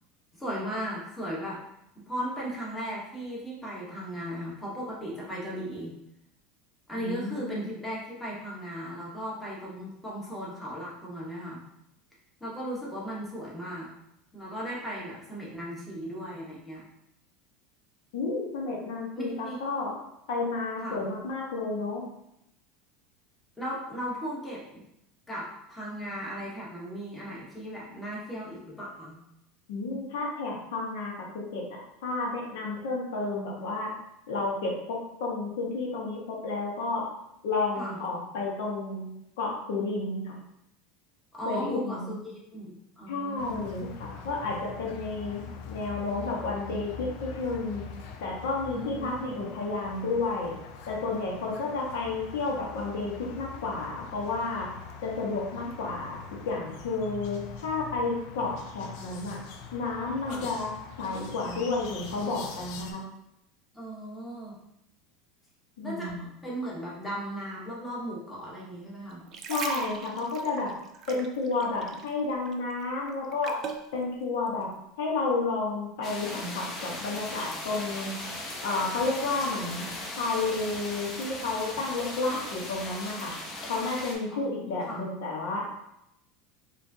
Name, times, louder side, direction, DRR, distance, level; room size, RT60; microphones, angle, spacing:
voice 1, 0.4-1.6 1.9-5.9 6.9-11.6 12.4-13.9 14.3-16.8 19.1-19.6 20.8-21.1 23.6-24.8 25.3-29.2 37.8-38.0 41.3-43.6 48.7-49.4 60.3-60.5 63.7-64.6 65.8-69.2 84.3-84.5 84.9-85.1, equal, 10° left, -6 dB, 1.1 m, -37 dB
voice 2, 7.0-7.7 18.1-19.9 20.3-22.0 29.7-33.9 34.3-37.0 37.4-39.0 39.4-40.4 41.5-42.2 43.1-47.8 48.2-50.5 50.9-54.7 55.0-59.4 59.7-60.7 61.0-63.0 65.8-66.3 69.5-70.7 71.1-73.6 73.9-74.7 75.0-78.1 78.6-79.9 80.2-83.3 83.7-85.7, left 3 dB, 80° left, -2 dB, 1.0 m, -31 dB
sound 1, 43.4-62.9, left 6 dB, 65° left, 0.4 m, -44 dB
sound 2, 69.1-72.2 72.5-73.9 74.5-74.6, right 5 dB, 35° right, 0.4 m, -38 dB
sound 3, 76.0-84.2, left 2 dB, 30° left, 0.8 m, -38 dB
4.6 x 2.5 x 2.7 m, 0.81 s
supercardioid pair, 135°, 0 cm